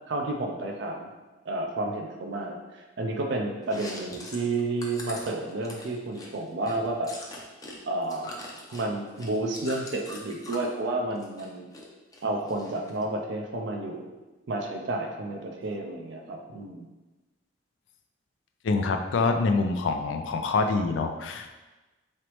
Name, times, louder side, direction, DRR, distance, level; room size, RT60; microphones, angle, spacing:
voice 1, 0.1-1.1 1.5-7.1 7.9-8.4 8.7-11.7 12.2-14.1 14.5-16.9, right 2 dB, 65° right, 2 dB, 0.4 m, -31 dB
Chewing mastication, 3.6-7.8 8.0-10.7 11.1-11.9 12.1-13.0, left 1 dB, 20° left, 0.5 m, -42 dB
voice 2, 18.6-21.6, left 3 dB, 85° left, 5 dB, 0.4 m, -26 dB
3.9 x 3.2 x 3.0 m, 1.2 s
head